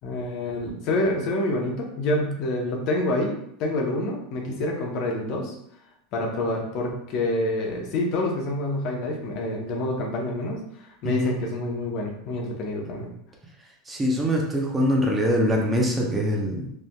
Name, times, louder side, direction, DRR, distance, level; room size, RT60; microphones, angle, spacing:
voice 1, 0.0-5.6 6.1-10.6 11.0-13.1, left 1 dB, 55° left, 0 dB, 0.8 m, -27 dB
voice 2, 11.0-11.4 13.9-16.7, equal, 15° right, -1 dB, 0.7 m, -23 dB
3.4 x 2.6 x 2.2 m, 0.73 s
supercardioid pair, 110°, 0 cm